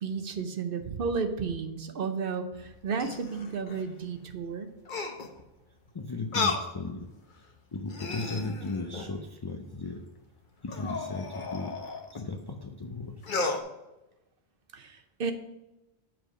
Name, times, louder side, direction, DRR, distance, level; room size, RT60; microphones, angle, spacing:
voice 1, 0.0-4.7 14.7-15.3, right 5 dB, 60° right, 7 dB, 0.9 m, -33 dB
sound 1, 2.5-3.9 4.9-5.4 6.3-6.7 7.3-7.4 7.8-9.2 10.7-12.2 13.2-13.6, left 4 dB, 50° left, 0.9 m, -34 dB
voice 2, 5.9-7.1 7.7-10.0 10.6-11.8 12.1-13.2, left 3 dB, 35° left, 3 dB, 0.4 m, -36 dB
7.7 x 4.8 x 4.9 m, 0.98 s
omnidirectional pair, 1.1 m